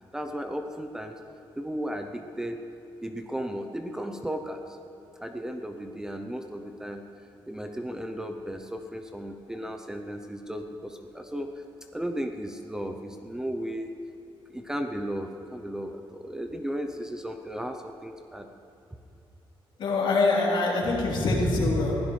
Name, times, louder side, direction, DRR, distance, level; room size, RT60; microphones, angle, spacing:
voice 1, 0.1-1.2 1.6-2.6 3.0-4.8 5.2-7.0 7.5-11.6 11.9-13.9 14.5-18.5, equal, 5° right, 5 dB, 0.6 m, -35 dB
voice 2, 19.8-22.0, left 2 dB, 60° left, -4 dB, 3.5 m, -24 dB
22.5 x 16.0 x 3.2 m, 2.9 s
wide cardioid pair, 180°, 9 cm